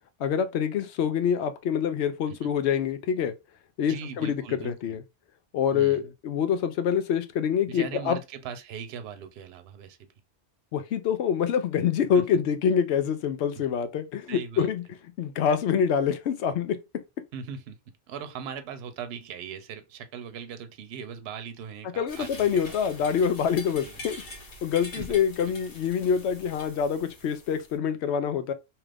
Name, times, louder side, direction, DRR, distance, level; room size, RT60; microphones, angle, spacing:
voice 1, 0.2-3.3 3.8-5.0 5.5-8.2 10.7-14.8 15.2-16.8 22.0-24.2 24.6-28.5, left 7 dB, 80° left, 0.9 m, -26 dB
voice 2, 3.9-5.0 5.7-6.1 7.7-10.1 12.1-12.2 13.6-13.7 14.3-14.7 17.3-17.8 18.1-22.6 23.7-24.0 25.0-25.6, right 7 dB, 70° right, 0.8 m, -39 dB
sound 1, 22.1-27.7, left 1 dB, 60° left, 1.3 m, -44 dB
2.8 x 2.4 x 3.3 m
omnidirectional pair, 1.1 m